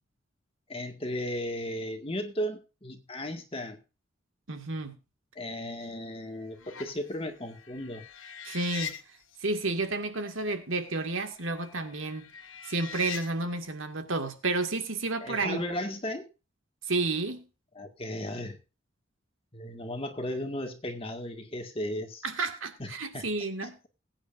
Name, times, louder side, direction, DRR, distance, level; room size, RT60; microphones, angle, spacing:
voice 1, 0.7-3.8 5.4-8.0 15.2-16.3 17.8-18.6 19.5-22.2 22.8-22.9 23.1-23.3 23.6-23.9, left 1 dB, 30° left, 1.9 m, -35 dB
voice 2, 4.5-5.0 8.4-9.0 9.4-12.3 12.6-15.6 16.9-17.5 22.2-23.8, right 3 dB, 85° right, 2.0 m, -31 dB
sound 1, 5.8-5.9 6.4-9.5 10.2-10.4 10.7-13.3, left 8 dB, 85° left, 1.2 m, -43 dB
21.0 x 8.9 x 2.6 m
head